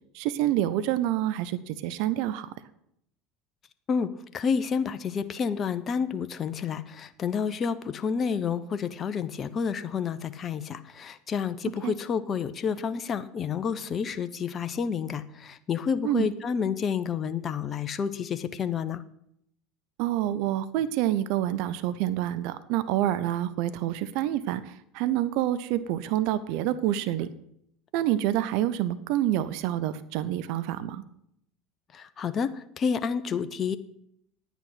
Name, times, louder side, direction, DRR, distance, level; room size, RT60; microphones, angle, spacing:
voice 1, 0.1-2.5 11.8-11.9 16.0-16.3 20.0-27.3 27.9-31.0, right 12 dB, 65° right, 15 dB, 0.7 m, -27 dB
voice 2, 4.3-19.0 31.9-33.8, left 6 dB, 35° left, 12 dB, 0.8 m, -29 dB
10.5 x 9.3 x 5.8 m, 0.74 s
hypercardioid pair, 75°, 0 cm